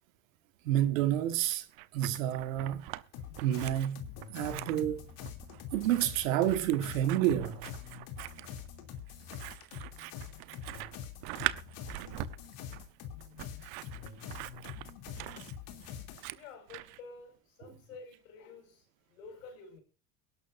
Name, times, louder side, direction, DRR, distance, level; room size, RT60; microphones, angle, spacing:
voice 1, 0.7-1.7 1.9-2.8 3.4-4.0 4.3-5.0 5.7-7.6, right 12 dB, 90° right, 1.7 m, -29 dB
Scissors, 1.5-3.0 3.3-17.0, right 19 dB, 70° right, 1.0 m, -43 dB
sound 1, 3.1-16.2, left 8 dB, 70° left, 3.0 m, -45 dB
voice 2, 15.4-19.8, left 4 dB, 90° left, 5.5 m, -51 dB
22.5 x 12.0 x 2.6 m
supercardioid pair, 80°, 39 cm